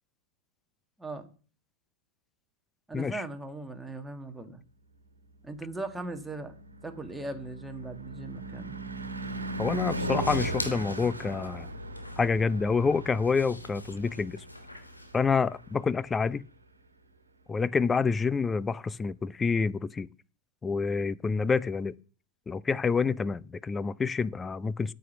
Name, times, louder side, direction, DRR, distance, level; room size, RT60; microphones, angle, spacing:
voice 1, 1.0-1.3 2.9-4.6 5.4-6.6 6.8-8.8, right 2 dB, 5° right, 1.7 m, -39 dB
Car passing by / Truck / Engine, 6.0-16.2, right 1 dB, 80° right, 1.5 m, -38 dB
sound 1, 9.0-15.9, left 2 dB, 85° left, 1.4 m, -46 dB
voice 2, 9.6-11.7 12.2-14.4 15.1-16.4 17.5-20.1 20.6-21.9 22.5-24.9, left 5 dB, 15° left, 0.5 m, -28 dB
9.2 x 8.4 x 5.9 m
figure-of-eight pair, 90°, 0 cm